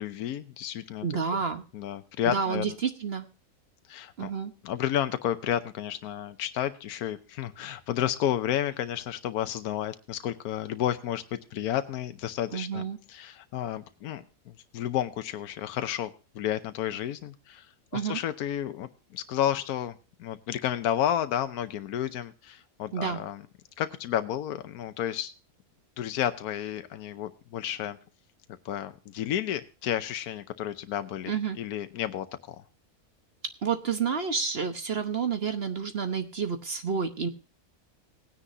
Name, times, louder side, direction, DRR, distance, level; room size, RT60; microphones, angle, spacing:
voice 1, 0.0-1.2 1.7-2.6 3.9-4.3 4.6-17.7 17.9-23.4 23.8-25.3 26.0-28.0 28.6-32.6, left 11 dB, 85° left, 10 dB, 1.2 m, -31 dB
voice 2, 1.0-1.6 2.2-3.3 4.2-4.5 12.5-13.0 17.9-18.2 22.9-23.2 31.3-31.6 33.6-37.3, right 6 dB, 45° right, 8 dB, 1.2 m, -29 dB
18.5 x 9.9 x 2.7 m, 0.32 s
omnidirectional pair, 1.5 m